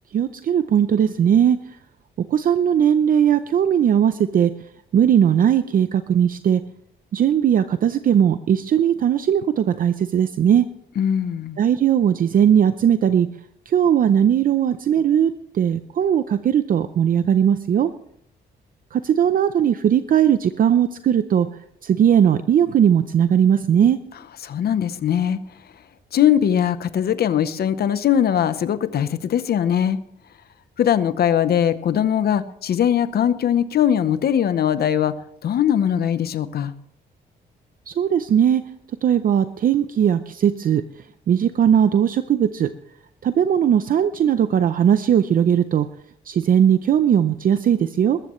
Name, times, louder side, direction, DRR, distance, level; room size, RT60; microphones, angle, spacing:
voice 1, 0.1-1.8 2.2-4.5 4.9-6.6 7.1-10.7 11.6-13.3 13.7-17.9 18.9-21.5 21.8-24.0 37.9-38.6 39.0-40.8 41.3-42.7 43.2-45.9 46.3-48.2, right 9 dB, 55° right, 11 dB, 0.6 m, -18 dB
voice 2, 11.0-11.6 24.4-25.4 26.1-30.0 30.8-35.2 35.4-36.7, left 9 dB, 65° left, 13 dB, 0.8 m, -20 dB
20.5 x 13.5 x 3.1 m, 0.70 s
cardioid pair, 135°, 18 cm